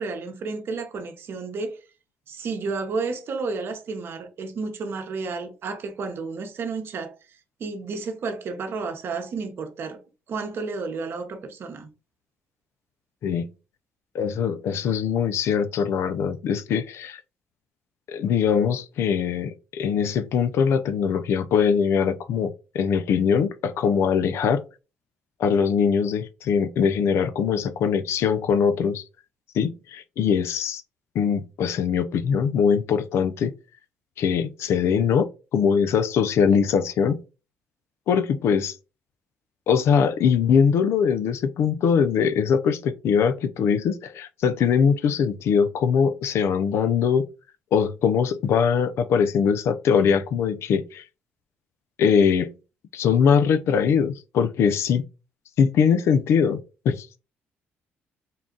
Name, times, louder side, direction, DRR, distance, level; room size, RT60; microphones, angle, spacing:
voice 1, 0.0-1.8 2.3-7.1 7.6-10.0 10.3-11.9, right 4 dB, 55° right, 0.9 m, -31 dB
voice 2, 14.1-17.2 18.1-24.6 25.4-29.0 29.5-30.8 31.1-33.5 34.2-35.3 35.5-37.2 38.1-38.8 39.7-47.2 47.7-51.0 52.0-52.5 52.9-55.0 55.6-56.6 56.8-57.1, left 7 dB, 70° left, 0.5 m, -22 dB
3.8 x 2.3 x 3.8 m
cardioid pair, 85°, 5 cm